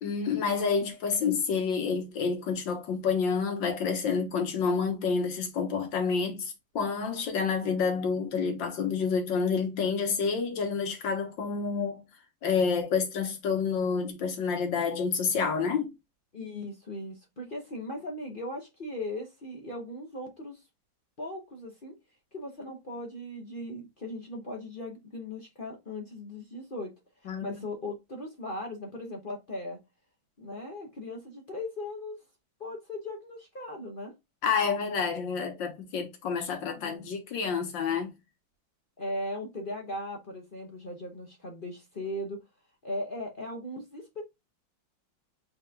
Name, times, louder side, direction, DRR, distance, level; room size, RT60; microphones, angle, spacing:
voice 1, 0.0-12.0 12.4-15.9 27.3-27.6 34.4-38.1, left 5 dB, 70° left, 1.9 m, -29 dB
voice 2, 16.3-20.6 21.2-22.0 22.3-26.9 27.2-29.8 30.4-32.2 32.6-34.1 36.7-37.1 39.0-42.4 42.8-44.2, left 1 dB, 40° left, 0.8 m, -38 dB
4.7 x 4.3 x 2.4 m
omnidirectional pair, 2.1 m